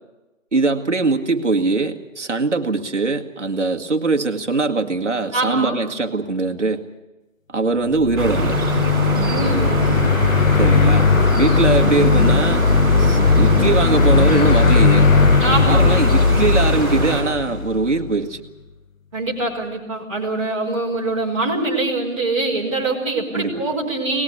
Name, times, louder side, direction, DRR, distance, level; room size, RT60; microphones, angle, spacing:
voice 1, 0.5-6.8 7.5-8.6 10.6-12.6 13.0-15.1 15.7-18.4 23.3-23.6, right 3 dB, 60° right, 6 dB, 2.1 m, -21 dB
voice 2, 5.3-5.8 9.1-10.0 15.4-16.0 19.1-24.2, right 2 dB, 25° right, -4 dB, 4.8 m, -24 dB
sound 1, 7.9-18.1, left 5 dB, 70° left, 0.8 m, -17 dB
sound 2, 8.2-17.2, right 2 dB, 5° left, 6.2 m, -23 dB
22.5 x 20.0 x 8.4 m, 1.0 s
figure-of-eight pair, 180°, 41 cm